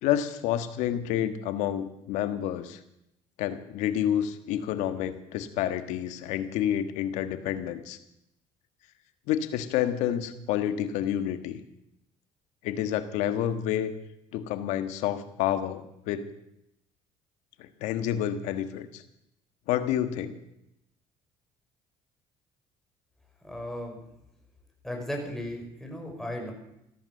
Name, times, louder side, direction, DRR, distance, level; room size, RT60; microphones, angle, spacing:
voice 1, 0.0-2.8 3.4-8.0 9.3-11.6 12.6-13.9 14.3-16.3 17.6-19.0 19.7-20.4, left 11 dB, 80° left, 10 dB, 1.5 m, -29 dB
voice 2, 23.4-24.0 24.8-26.5, left 1 dB, 5° left, 1 dB, 5.4 m, -36 dB
14.5 x 13.5 x 6.6 m, 0.83 s
supercardioid pair, 80°, 12 cm